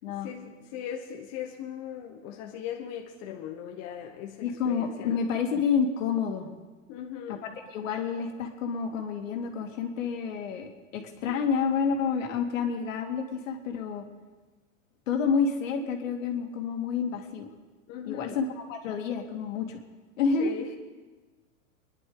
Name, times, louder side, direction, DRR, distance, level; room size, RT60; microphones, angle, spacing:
voice 1, 0.2-5.2 6.9-7.4 17.9-18.4 20.4-20.7, left 9 dB, 40° left, 1 dB, 1.3 m, -39 dB
voice 2, 4.4-6.5 7.3-14.0 15.1-17.5 18.0-19.8 20.2-20.5, left 6 dB, 70° left, 3 dB, 2.3 m, -29 dB
24.5 x 11.0 x 3.9 m, 1.3 s
hypercardioid pair, 130°, 40 cm